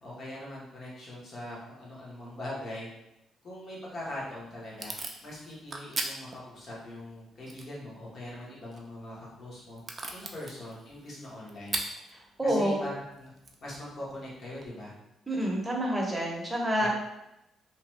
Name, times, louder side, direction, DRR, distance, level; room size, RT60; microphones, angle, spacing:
voice 1, 0.0-2.9 3.4-4.9 5.2-9.8 10.1-11.8 12.4-13.3 13.6-14.9 16.8-16.9, left 1 dB, 50° left, -5 dB, 1.2 m, -41 dB
Packing tape duct tape / Tearing, 3.9-14.7, right 2 dB, 35° right, 0.4 m, -42 dB
voice 2, 12.4-12.8 15.3-16.9, equal, 10° right, -2 dB, 0.9 m, -28 dB
3.0 x 2.3 x 3.1 m, 0.89 s
cardioid pair, 90°, 0 cm